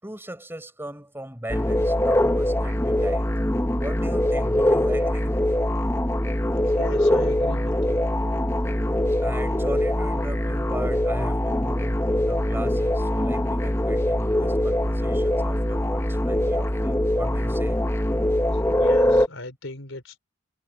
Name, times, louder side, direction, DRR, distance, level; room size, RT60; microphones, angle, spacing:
voice 1, 0.0-3.3 3.8-5.6 9.2-17.8, right 1 dB, 10° right, 5.3 m, -38 dB
sound 1, 1.5-19.3, left 1 dB, 10° left, 0.8 m, -23 dB
voice 2, 6.7-8.1 18.8-20.2, left 2 dB, 75° left, 4.1 m, -37 dB
head